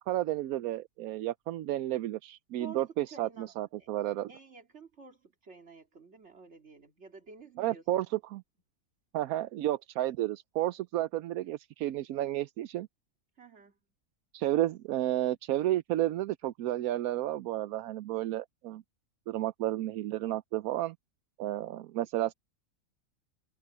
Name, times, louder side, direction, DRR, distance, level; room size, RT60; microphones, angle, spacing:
voice 1, 0.0-4.3 7.6-8.4 9.1-12.9 14.3-18.8 19.3-21.0 21.4-22.3, right 14 dB, 85° right, 1.0 m, -32 dB
voice 2, 2.6-3.9 4.3-8.0 13.4-13.8, right 5 dB, 50° right, 2.8 m, -51 dB
omnidirectional pair, 1.5 m